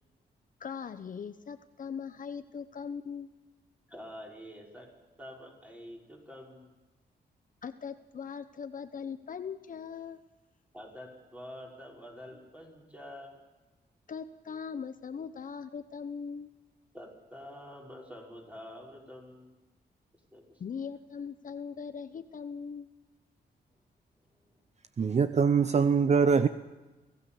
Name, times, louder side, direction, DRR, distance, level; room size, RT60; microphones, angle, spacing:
voice 1, 0.6-3.3 7.6-10.2 14.1-16.5 20.6-22.9, left 6 dB, 50° left, 10 dB, 0.9 m, -40 dB
voice 2, 3.9-4.9 5.2-6.7 10.7-13.4 16.9-19.6 20.3-20.6 24.4-24.6, left 1 dB, 10° right, -1 dB, 5.3 m, -47 dB
voice 3, 25.0-26.5, right 5 dB, 40° right, 11 dB, 0.7 m, -23 dB
24.0 x 17.0 x 7.2 m, 1.2 s
wide cardioid pair, 120°, 17 cm